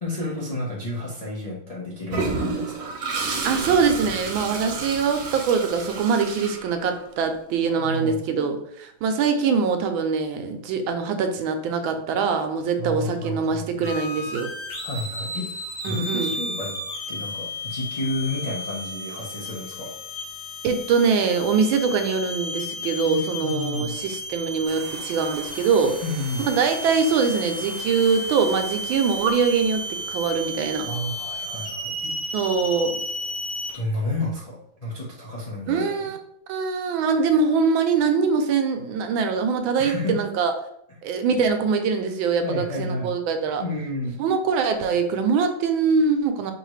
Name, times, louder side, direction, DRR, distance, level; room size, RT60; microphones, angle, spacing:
voice 1, 0.0-2.9 7.6-8.2 12.8-13.9 14.8-15.5 15.8-16.8 17.1-19.9 23.1-24.0 26.0-26.5 30.9-32.4 33.7-35.9 39.8-40.2 42.4-43.1 43.6-44.2, left 2 dB, 45° left, -7 dB, 0.5 m, -31 dB
Toilet flush, 2.1-7.2, right 4 dB, 55° right, 1.1 m, -30 dB
voice 2, 3.4-14.5 15.8-16.3 20.6-26.0 26.4-30.9 32.3-33.0 35.7-36.2 36.5-40.5 41.0-43.6 44.2-46.5, right 5 dB, 80° right, 6 dB, 1.4 m, -23 dB
sound 1, 13.8-33.7, left 1 dB, 65° left, 2.0 m, -33 dB
sound 2, 24.7-32.8, right 1 dB, 35° right, 0.6 m, -45 dB
4.7 x 2.9 x 3.1 m, 0.74 s
omnidirectional pair, 2.2 m